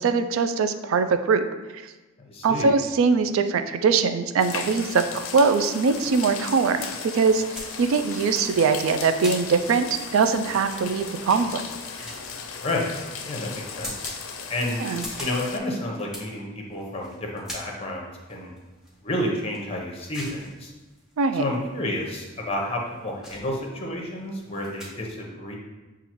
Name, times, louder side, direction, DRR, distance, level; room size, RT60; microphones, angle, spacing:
voice 1, 0.0-1.4 2.4-6.8 7.1-7.4 7.8-9.9 10.1-11.6 14.8-15.0 21.2-21.4, right 5 dB, 75° right, 9 dB, 0.3 m, -22 dB
voice 2, 2.2-2.7 12.6-12.9 13.3-14.0 14.5-14.8 15.2-18.5 19.0-20.7 21.3-25.6, left 1 dB, 30° left, 0 dB, 0.7 m, -30 dB
sound 1, 4.4-15.6, left 5 dB, 75° left, 0.4 m, -36 dB
sound 2, 7.5-24.9, equal, 5° right, 1.0 m, -43 dB
6.9 x 2.4 x 2.9 m, 1.2 s
head